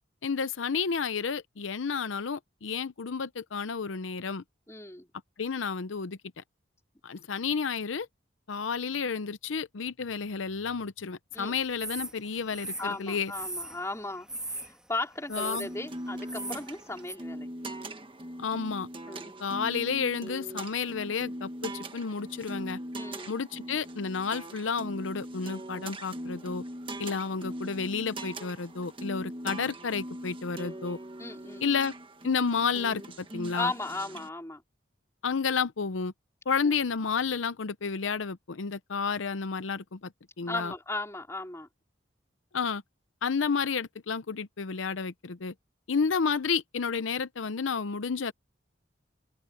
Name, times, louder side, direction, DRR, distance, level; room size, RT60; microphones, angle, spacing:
voice 1, 0.2-4.4 5.4-6.4 7.0-8.1 8.5-13.3 15.3-15.7 18.4-18.9 19.4-22.8 23.3-26.6 27.0-31.0 31.6-31.9 32.2-33.7 35.2-36.1 36.5-40.1 40.4-40.7 42.5-42.8 43.2-45.5 45.9-48.3, left 5 dB, 90° left, 0.7 m, -31 dB
voice 2, 4.7-5.1 11.3-11.6 12.8-17.5 19.1-19.3 23.0-23.3 31.2-31.7 33.5-34.6 36.6-36.7 40.5-41.7, left 2 dB, 15° left, 4.3 m, -36 dB
sound 1, 11.8-12.1 12.5-13.8 14.3-14.7 15.3-15.7 16.2-16.6 17.1-17.2, right 1 dB, 5° right, 2.3 m, -37 dB
sound 2, 15.5-34.3, right 1 dB, 25° right, 1.5 m, -41 dB
open air
head